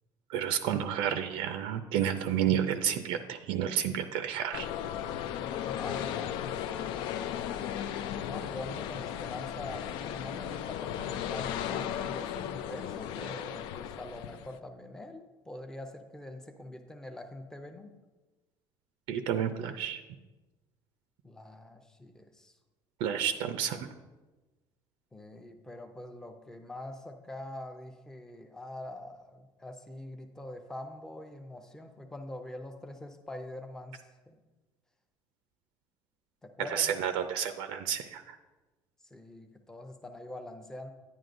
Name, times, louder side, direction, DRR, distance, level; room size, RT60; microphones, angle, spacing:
voice 1, 0.3-4.7 19.1-20.0 23.0-23.9 36.6-38.4, right 9 dB, 85° right, 9 dB, 0.5 m, -30 dB
sound 1, 4.5-14.6, left 10 dB, 75° left, 0.4 m, -36 dB
voice 2, 5.6-6.9 8.1-17.9 21.2-22.5 25.1-34.0 34.3-34.4 36.4-36.9 39.1-40.9, left 1 dB, 5° left, 5 dB, 0.6 m, -44 dB
10.5 x 9.2 x 2.6 m, 1.2 s
cardioid pair, 160°, 8 cm